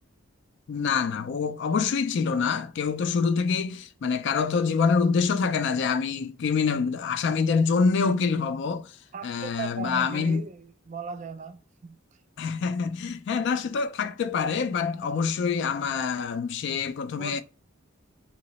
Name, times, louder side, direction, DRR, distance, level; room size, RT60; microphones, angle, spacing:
voice 1, 0.7-9.0 9.2-10.4 12.4-17.4, left 5 dB, 60° left, 0.3 m, -26 dB
voice 2, 9.1-12.0 17.2-17.4, right 5 dB, 35° right, 0.3 m, -37 dB
2.8 x 2.0 x 3.9 m
head